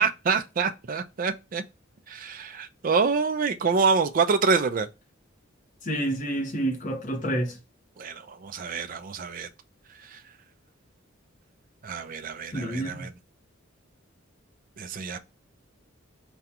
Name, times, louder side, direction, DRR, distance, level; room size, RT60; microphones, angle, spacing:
voice 1, 0.0-1.6 2.1-4.9 8.0-9.5 10.1-10.2 11.8-13.1 14.8-15.2, right 5 dB, 40° right, 0.4 m, -26 dB
voice 2, 5.8-7.6 12.5-13.1, right 1 dB, 40° left, 0.9 m, -28 dB
4.9 x 2.3 x 2.8 m
head